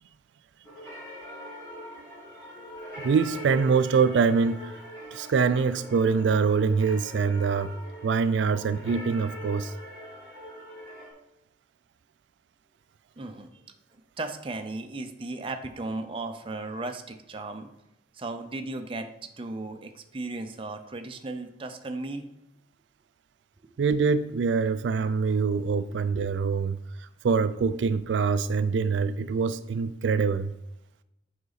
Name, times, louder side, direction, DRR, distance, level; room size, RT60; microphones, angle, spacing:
sound 1, 0.6-11.1, equal, 20° left, 3.0 m, -42 dB
voice 1, 3.0-4.7 5.1-7.7 8.0-9.7 23.8-30.5, right 5 dB, 85° right, 0.4 m, -24 dB
voice 2, 13.2-13.5 14.2-17.7 18.1-19.1 19.4-22.3 23.6-23.7, right 2 dB, 30° right, 0.6 m, -36 dB
8.1 x 5.0 x 4.0 m
head